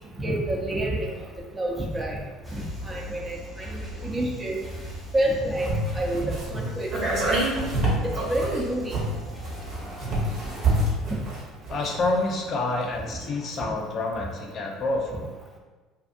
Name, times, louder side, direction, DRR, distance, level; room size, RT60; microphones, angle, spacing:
voice 1, 0.1-1.2 1.5-2.2 2.5-4.6 5.1-5.7 5.9-7.4 8.0-9.0, right 1 dB, 20° right, -2 dB, 0.6 m, -28 dB
sound 1, 2.4-10.8, equal, ahead, 0.9 m, -39 dB
sound 2, 5.6-12.3 12.6-12.7, right 2 dB, 55° right, 1.0 m, -27 dB
voice 2, 11.7-15.3, left 2 dB, 50° left, 1 dB, 0.4 m, -28 dB
2.6 x 2.5 x 2.5 m, 1.3 s
hypercardioid pair, 75°, 0 cm